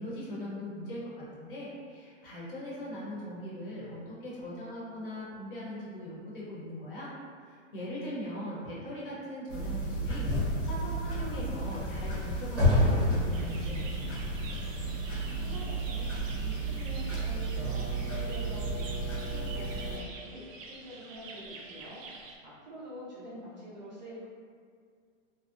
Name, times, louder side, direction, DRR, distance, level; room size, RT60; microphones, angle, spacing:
voice 1, 0.0-7.1 7.4-13.8, equal, 45° left, -6 dB, 0.7 m, -40 dB
sound 1, 9.5-20.0, equal, 75° left, 0.8 m, -32 dB
sound 2, 10.2-15.3, left 2 dB, 5° right, 0.7 m, -33 dB
sound 3, 13.3-22.4, right 4 dB, 85° right, 0.5 m, -47 dB
voice 2, 15.4-16.1 16.4-22.0 22.4-24.3, equal, 40° right, -8 dB, 0.4 m, -46 dB
2.6 x 2.1 x 2.4 m, 2.1 s
hypercardioid pair, 170°, 38 cm